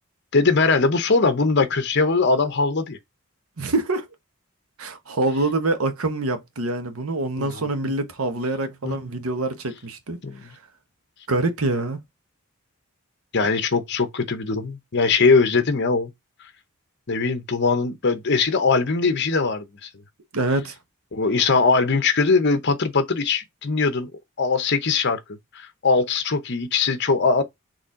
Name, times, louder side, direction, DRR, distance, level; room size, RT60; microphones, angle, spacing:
voice 1, 0.3-3.0 7.4-7.9 8.8-9.0 10.2-10.4 13.3-16.1 17.1-19.9 21.1-24.1 24.4-25.2 25.5-27.4, left 4 dB, 50° left, 0.8 m, -21 dB
voice 2, 3.6-4.0 4.8-10.5 11.3-12.0 20.3-20.7, right 2 dB, 70° right, 0.9 m, -25 dB
4.2 x 3.1 x 3.7 m
head